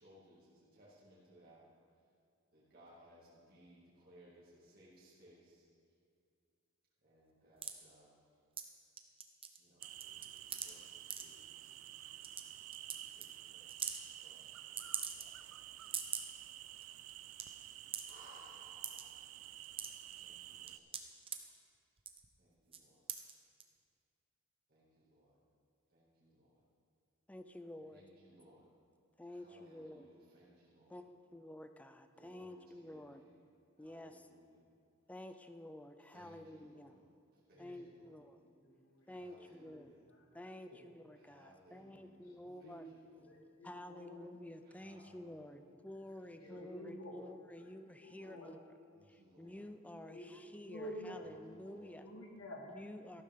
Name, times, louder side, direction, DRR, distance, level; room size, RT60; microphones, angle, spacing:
voice 1, 0.0-1.6 2.5-5.7 7.0-8.2 9.6-12.6 12.9-13.8 14.2-15.7 18.1-19.3 20.2-20.8 22.4-23.0 24.7-25.4 25.9-26.6 27.8-28.7 29.3-31.0 32.2-33.3 33.8-34.6 36.1-37.0 37.5-38.1 39.0-39.8 41.1-43.2 44.7-45.6 46.2-46.8 48.9-49.6 51.1-52.1 53.1-53.2, right 1 dB, 45° right, -8 dB, 2.2 m, -64 dB
sound 1, 7.6-7.7 8.6-8.7 9.0-9.6 9.8-10.7 11.1-11.2 11.9-12.0 12.2-12.4 12.7-13.0 13.2-13.3 13.7-14.0 14.8-15.5 15.8-16.3 16.8-16.9 17.1-17.4 17.9-18.1 18.8-19.0 19.4-20.1 20.7-21.4 22.0-22.3 22.7-22.8 23.1-23.3 23.6-23.7, right 8 dB, 25° right, 0.7 m, -41 dB
sound 2, 9.8-20.8, right 13 dB, 70° right, 0.4 m, -51 dB
voice 2, 27.3-28.0 29.2-30.1 30.9-33.2 33.8-34.3 35.1-37.0 37.6-38.4 39.1-39.9 40.3-42.9 43.6-48.6 49.1-52.3 52.7-53.2, left 1 dB, 5° left, 8 dB, 0.4 m, -51 dB
voice 3, 38.6-39.1 39.6-40.2 40.6-40.8 41.8-42.0 42.4-42.8 43.2-44.2 45.5-45.7 46.4-47.2 47.6-48.5 49.9-51.3 51.6-52.6, equal, 70° left, -1 dB, 1.9 m, -51 dB
13.5 x 12.0 x 3.6 m, 2.3 s
head